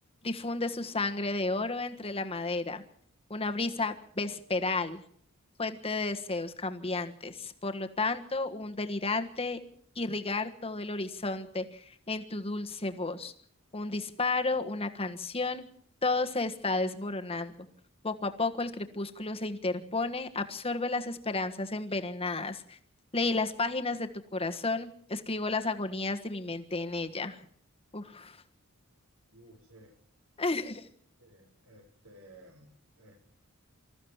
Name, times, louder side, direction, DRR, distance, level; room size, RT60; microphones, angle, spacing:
voice 1, 0.2-2.8 3.3-5.0 5.6-9.6 9.9-13.3 13.7-15.7 16.0-17.7 18.0-22.8 23.1-27.4 27.9-28.4 30.4-30.9, left 3 dB, 25° left, 7 dB, 1.5 m, -32 dB
voice 2, 29.3-29.9 31.2-33.2, right 1 dB, 85° right, 4 dB, 5.9 m, -55 dB
25.5 x 14.5 x 7.3 m, 0.64 s
head